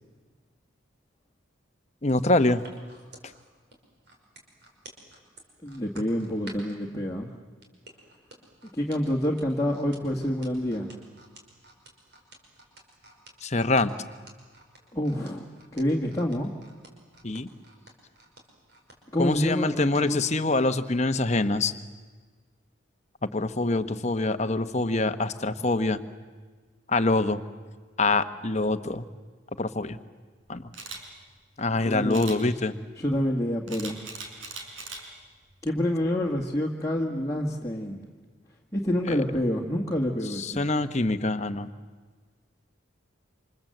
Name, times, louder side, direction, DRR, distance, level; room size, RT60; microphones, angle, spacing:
voice 1, 2.0-2.6 13.4-13.9 17.2-17.5 19.2-21.7 23.3-26.0 26.9-27.4 28.0-29.0 29.6-30.0 30.5-30.6 31.6-32.7 39.1-39.2 40.3-41.7, left 2 dB, 35° left, 10 dB, 1.1 m, -25 dB
sound 1, 2.0-6.8 7.6-20.4 20.9-21.0, right 2 dB, 55° right, 5.3 m, -51 dB
voice 2, 5.6-7.3 8.7-10.9 14.9-15.5 15.7-16.5 19.1-20.2 31.7-32.2 33.0-34.0 35.6-38.0 38.7-40.6, left 1 dB, 15° left, -2 dB, 1.9 m, -27 dB
Camera, 30.7-31.0 32.1-32.4 33.7-35.0 35.5-35.7, right 4 dB, 80° right, 4.5 m, -39 dB
28.5 x 26.5 x 7.9 m, 1.4 s
head